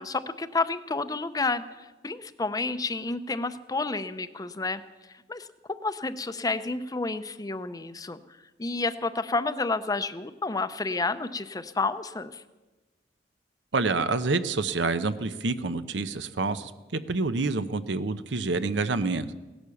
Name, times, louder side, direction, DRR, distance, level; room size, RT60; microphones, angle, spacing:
voice 1, 0.0-4.8 5.3-8.2 8.6-12.4, left 3 dB, 20° left, 13 dB, 0.6 m, -30 dB
voice 2, 13.7-19.4, right 3 dB, 90° right, 11 dB, 0.8 m, -28 dB
17.0 x 11.5 x 7.0 m, 1.2 s
head